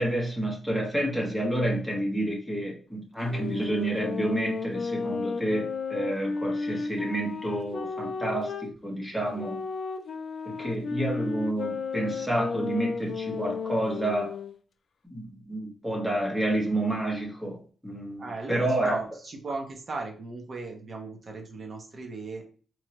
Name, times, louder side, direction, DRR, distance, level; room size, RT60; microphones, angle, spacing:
voice 1, 0.0-9.6 10.4-14.4 15.1-17.6 17.8-19.0, right 1 dB, 5° right, 1.2 m, -29 dB
Sax Alto - G minor, 3.2-8.7 9.3-14.5, left 4 dB, 55° left, 0.4 m, -33 dB
voice 2, 18.2-22.4, right 3 dB, 35° right, 0.8 m, -37 dB
3.4 x 3.1 x 2.9 m
wide cardioid pair, 170°, 0 cm